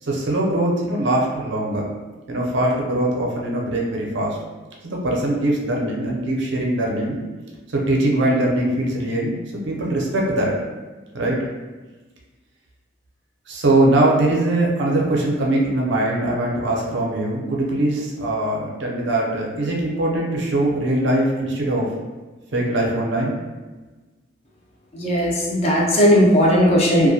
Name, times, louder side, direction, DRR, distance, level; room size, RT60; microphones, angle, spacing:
voice 1, 0.1-1.8 2.3-4.4 4.8-7.2 7.7-9.3 9.7-10.5 11.1-11.4 13.5-21.9 22.5-23.4, right 1 dB, 60° right, -2 dB, 0.5 m, -21 dB
voice 2, 24.9-27.1, equal, 30° left, -4 dB, 0.4 m, -16 dB
2.2 x 2.1 x 2.6 m, 1.2 s
head